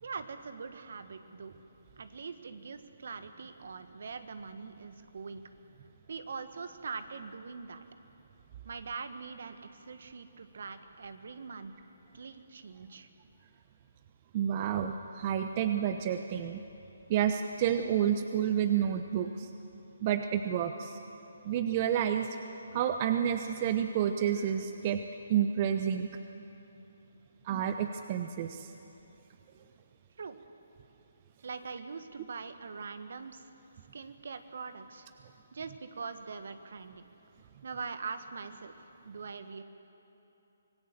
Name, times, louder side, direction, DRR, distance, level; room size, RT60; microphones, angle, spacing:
voice 1, 0.0-1.6 2.0-5.4 6.1-7.8 8.6-11.7 12.1-13.1 30.2-30.4 31.4-33.5 33.9-35.1 35.5-37.1 37.6-39.6, right 5 dB, 65° right, 10 dB, 1.5 m, -42 dB
voice 2, 14.3-16.6 17.1-19.5 20.0-21.0 21.4-22.3 22.7-25.0 25.3-26.1 27.5-28.7, right 9 dB, 35° right, 8 dB, 0.9 m, -29 dB
25.5 x 18.5 x 7.6 m, 2.9 s
figure-of-eight pair, 145°, 0 cm